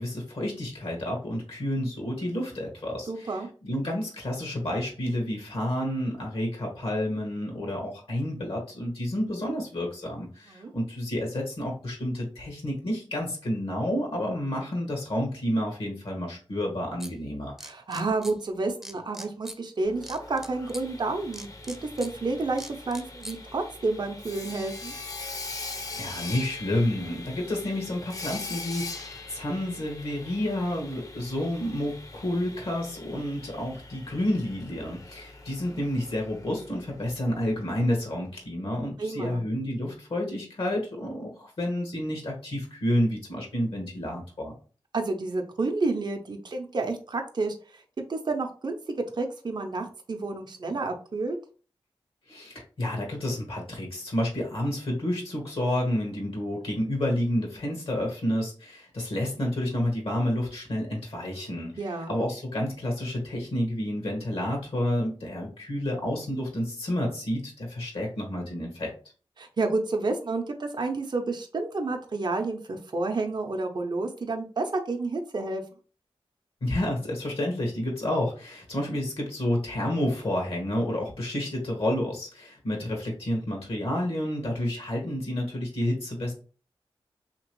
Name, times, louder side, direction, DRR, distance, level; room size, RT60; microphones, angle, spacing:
voice 1, 0.0-17.5 25.9-44.5 52.3-68.9 76.6-86.3, left 1 dB, 70° left, 0 dB, 1.2 m, -30 dB
voice 2, 3.1-3.5 10.5-10.7 17.6-24.9 39.0-39.4 44.9-47.8 48.1-51.4 61.8-62.1 69.4-75.6, right 3 dB, 45° right, 3 dB, 0.6 m, -30 dB
sound 1, 17.0-17.1 17.6-18.3 18.8-19.6 20.0-20.8 21.3-22.1 22.6-23.4, equal, 5° right, 0.6 m, -41 dB
Sawing, 19.8-37.7, left 3 dB, 35° left, 0.6 m, -42 dB
2.9 x 2.9 x 3.0 m, 0.38 s
cardioid pair, 50°, 10 cm